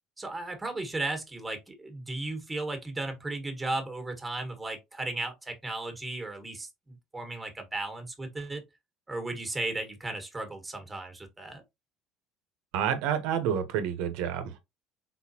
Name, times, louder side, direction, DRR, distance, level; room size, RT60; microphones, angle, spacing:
voice 1, 0.2-8.6 9.1-11.6, right 2 dB, 15° right, 1.6 m, -35 dB
voice 2, 12.7-14.6, right 8 dB, 80° right, 0.9 m, -29 dB
4.2 x 3.9 x 2.8 m
supercardioid pair, 95°, 0 cm